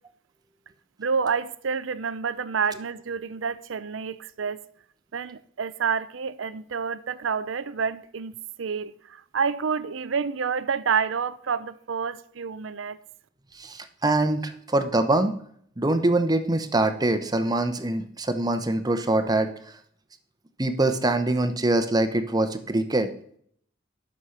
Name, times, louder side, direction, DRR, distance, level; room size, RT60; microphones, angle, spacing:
voice 1, 1.0-4.6 5.1-8.3 8.6-13.0, right 6 dB, 85° right, 0.5 m, -28 dB
voice 2, 13.5-15.4 15.8-19.5 20.6-23.1, right 2 dB, 20° right, 0.9 m, -24 dB
11.5 x 6.4 x 5.7 m
head